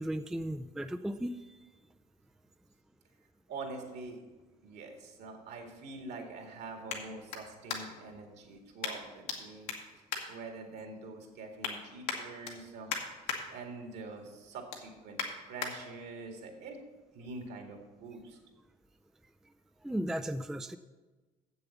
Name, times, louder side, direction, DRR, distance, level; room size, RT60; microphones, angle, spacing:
voice 1, 0.0-1.4 19.8-20.8, right 1 dB, 5° right, 9 dB, 0.4 m, -35 dB
voice 2, 3.5-4.2 4.6-9.7 10.3-12.9 13.5-15.2 15.5-16.8 17.1-18.4, right 3 dB, 60° right, 3 dB, 2.1 m, -45 dB
sound 1, 4.3-8.2 8.8-9.4 9.6-11.0 11.3-11.7 12.0-13.4 13.8-14.1 14.4-15.7 16.3-16.4, left 6 dB, 75° left, 1.5 m, -40 dB
7.8 x 7.0 x 7.0 m, 1.2 s
hypercardioid pair, 60°, 19 cm